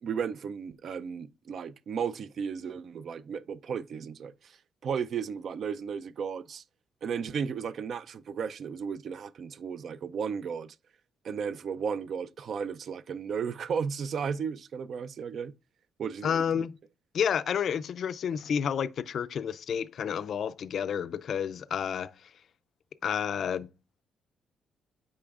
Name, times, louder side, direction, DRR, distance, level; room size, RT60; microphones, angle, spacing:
voice 1, 0.0-4.6 4.8-6.6 7.0-10.7 11.2-15.5 16.0-16.5, right 6 dB, 60° right, 0.4 m, -34 dB
voice 2, 16.2-16.8 17.1-22.1 23.0-23.7, left 8 dB, 60° left, 0.3 m, -30 dB
8.5 x 5.3 x 2.4 m
cardioid pair, 90°, 0 cm